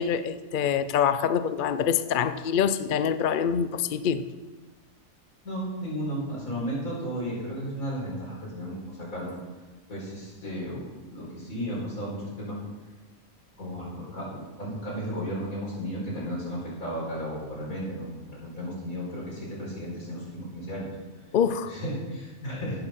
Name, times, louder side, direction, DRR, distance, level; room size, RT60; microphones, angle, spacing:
voice 1, 0.0-4.2 21.3-21.7, left 8 dB, 60° left, 0.5 m, -25 dB
voice 2, 5.4-9.3 9.9-12.6 13.6-20.9 21.6-22.9, equal, 80° left, 5.1 m, -34 dB
16.0 x 6.6 x 5.8 m
omnidirectional pair, 1.5 m